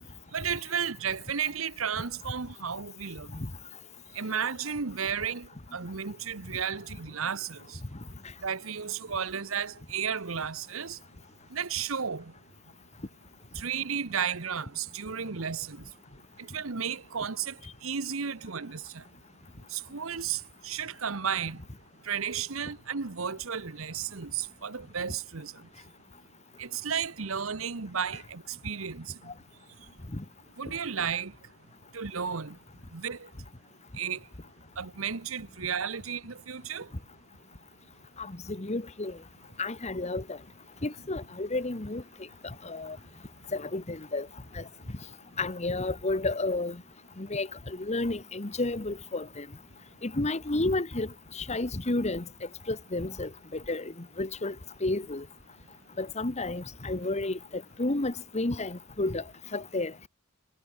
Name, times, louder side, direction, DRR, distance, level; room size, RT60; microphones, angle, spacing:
voice 1, 0.3-3.3 4.1-7.8 8.4-11.0 11.5-12.2 13.5-15.8 16.5-17.5 17.8-19.0 19.7-21.6 22.1-25.5 26.6-29.1 30.6-31.3 31.9-32.6 32.9-33.2 34.0-34.2 34.8-36.9, right 7 dB, 80° right, 1.1 m, -33 dB
voice 2, 38.2-39.2 39.6-40.4 40.8-42.0 42.4-43.0 43.5-44.3 44.5-44.6 45.4-46.8 47.2-49.5 50.0-52.2 52.7-54.5 54.8-55.2 56.0-59.2 59.5-60.1, left 2 dB, 35° left, 1.3 m, -31 dB
head